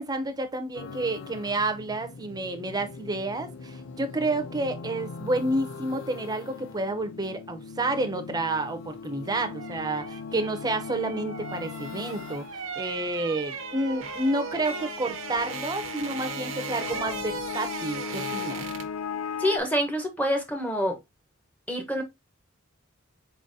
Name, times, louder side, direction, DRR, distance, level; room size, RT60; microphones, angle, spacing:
voice 1, 0.0-18.7, right 2 dB, 20° right, 0.7 m, -30 dB
sound 1, 0.7-19.6, left 6 dB, 75° left, 0.4 m, -39 dB
sound 2, 9.0-19.0 19.3-19.5, right 6 dB, 90° right, 0.8 m, -38 dB
voice 2, 19.4-21.0 21.7-22.0, equal, 10° left, 0.9 m, -26 dB
4.2 x 3.9 x 2.6 m
head